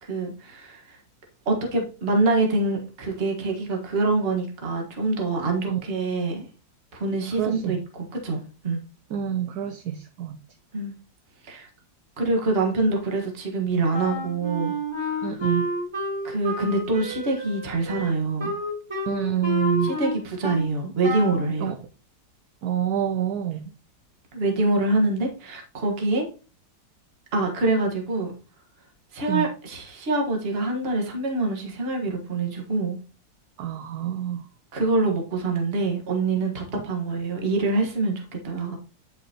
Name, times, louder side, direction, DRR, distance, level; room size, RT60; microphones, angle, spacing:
voice 1, 0.0-1.0 1.4-6.5 6.9-7.8 8.2-8.8 10.7-10.9 11.4-11.7 12.2-14.7 15.0-15.4 16.2-18.5 19.8-21.7 24.3-26.2 27.3-28.3 29.1-33.0 34.7-38.8, right 2 dB, 35° right, 1 dB, 1.5 m, -25 dB
voice 2, 7.4-7.8 9.1-10.4 15.2-15.7 19.1-20.0 21.6-21.8 22.6-23.7 29.3-29.5 33.6-34.4 36.7-36.8, right 10 dB, 70° right, 8 dB, 1.0 m, -27 dB
Wind instrument woodwind instrument, 13.9-20.7 21.0-21.5, equal, 15° right, 3.1 m, -30 dB
9.6 x 5.9 x 2.9 m, 0.36 s
omnidirectional pair, 2.0 m